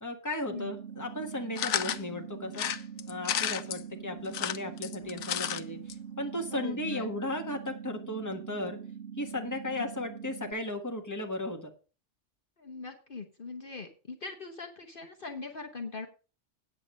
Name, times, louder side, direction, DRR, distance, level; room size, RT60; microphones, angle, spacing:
voice 1, 0.0-2.7 3.1-5.8 6.2-8.8 9.2-11.7, left 1 dB, 15° left, 4 dB, 1.5 m, -35 dB
sound 1, 0.5-10.5, right 7 dB, 75° right, 0.9 m, -43 dB
sound 2, 1.6-2.0 2.5-3.8 4.3-5.6 5.9-6.0 6.2-6.3, left 9 dB, 90° left, 1.0 m, -32 dB
voice 2, 6.5-7.1 12.6-16.1, left 4 dB, 50° left, 5 dB, 1.2 m, -41 dB
8.9 x 8.5 x 5.1 m, 0.35 s
omnidirectional pair, 1.2 m